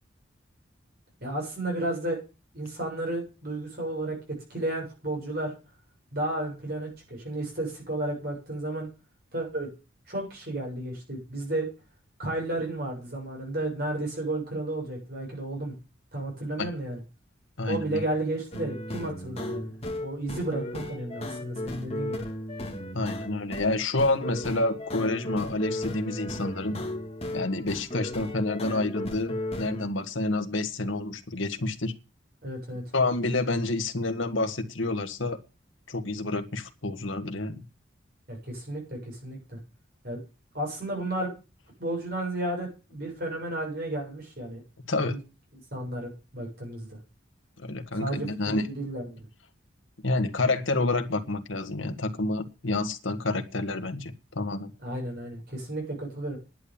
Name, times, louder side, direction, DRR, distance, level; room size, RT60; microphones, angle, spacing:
voice 1, 1.2-2.2 2.5-5.5 6.1-8.9 9.3-9.7 10.1-11.7 12.2-15.8 16.1-17.0 17.7-19.7 20.0-22.3 32.4-32.8 38.3-39.6 40.0-40.2 40.5-41.3 41.8-44.6 45.1-45.2 45.7-47.0 47.9-49.2 54.8-56.4, right 1 dB, 50° right, 7.3 m, -32 dB
voice 2, 17.6-18.0 22.9-26.8 27.3-31.9 32.9-35.4 35.9-37.6 44.9-45.2 47.6-48.7 50.0-54.7, left 2 dB, 85° left, 1.6 m, -28 dB
sound 1, 18.5-29.9, left 1 dB, 30° left, 2.2 m, -35 dB
11.0 x 8.9 x 7.1 m
head